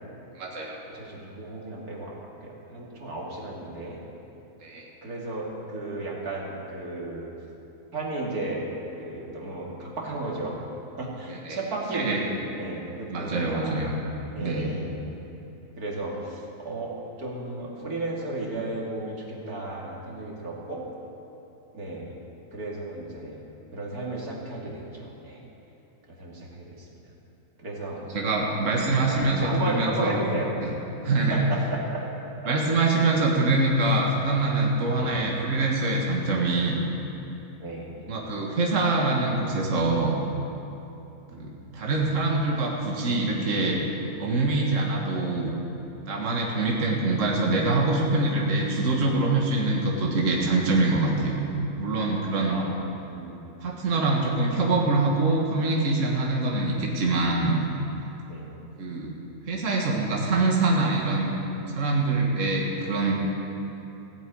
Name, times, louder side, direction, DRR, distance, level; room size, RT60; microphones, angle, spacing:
voice 1, 0.4-0.8 4.6-4.9 11.3-11.6 11.9-12.2 13.1-14.0 14.4-14.7 28.1-30.2 30.6-30.7 31.0-31.4 32.5-36.8 38.1-40.2 41.4-43.8 44.2-45.6 46.1-51.4 51.8-52.6 53.6-57.6 58.8-59.1 59.5-61.4 61.7-63.1, right 2 dB, 50° right, -2 dB, 2.0 m, -24 dB
voice 2, 0.9-4.0 5.0-7.3 7.9-8.7 9.0-10.6 11.0-13.8 14.3-15.1 15.8-20.9 21.7-22.2 22.5-23.4 23.7-25.4 26.1-26.9 27.6-28.0 28.5-28.6 29.0-30.5 31.3-32.1 32.4-32.5 32.9-33.1 35.0-35.2 37.6-37.9 41.3-41.5 52.5-53.5 58.3-58.5, right 2 dB, 70° right, -3 dB, 2.9 m, -34 dB
16.0 x 8.9 x 8.6 m, 3.0 s
omnidirectional pair, 1.7 m